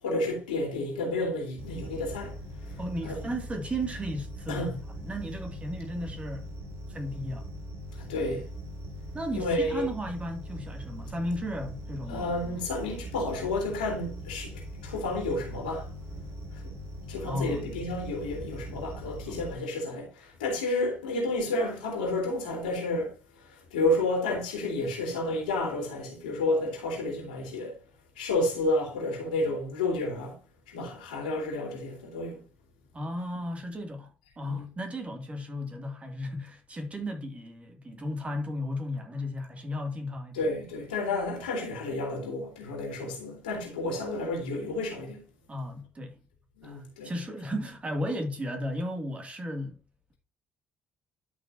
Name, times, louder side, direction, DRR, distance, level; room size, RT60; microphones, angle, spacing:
voice 1, 0.0-2.4 2.6-3.4 4.5-4.8 7.2-7.3 8.0-8.5 9.3-9.9 12.1-15.9 16.5-16.7 17.1-27.8 28.2-30.4 30.7-32.4 34.5-34.6 40.3-45.2 46.6-47.1, left 2 dB, 75° left, 3.5 m, -31 dB
sound 1, 1.6-19.5, equal, 55° right, 3.8 m, -41 dB
voice 2, 2.8-6.5 6.9-7.5 9.1-12.3 17.2-17.7 19.2-19.3 32.9-34.1 34.4-40.4 45.5-46.2 46.6-49.8, equal, 25° right, 2.5 m, -35 dB
12.0 x 6.3 x 2.8 m
figure-of-eight pair, 50°, 5 cm